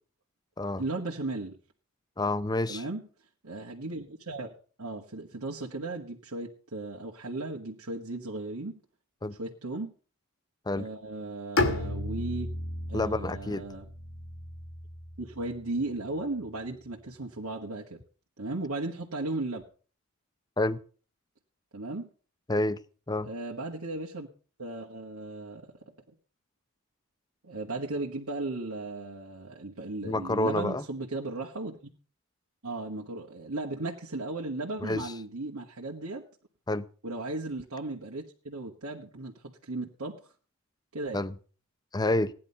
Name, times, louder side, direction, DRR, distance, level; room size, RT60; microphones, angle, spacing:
voice 1, 0.8-1.6 2.7-3.0 3.4-8.8 9.4-9.9 10.7-12.5 12.9-13.9 15.2-18.0 18.4-19.6 21.7-22.1 23.2-24.3 24.6-25.9 27.4-31.9 32.6-36.2 37.0-40.1 40.9-41.2, right 2 dB, 80° right, 1.7 m, -36 dB
voice 2, 2.2-2.8 9.2-9.3 10.7-10.9 12.9-13.6 20.6-20.8 22.5-22.8 23.1-23.3 30.0-30.8 34.8-35.1 36.7-36.8 41.1-41.3 41.9-42.3, left 2 dB, 20° left, 0.6 m, -28 dB
Bowed string instrument, 11.6-15.5, left 2 dB, 60° left, 1.7 m, -33 dB
16.5 x 10.5 x 5.6 m
head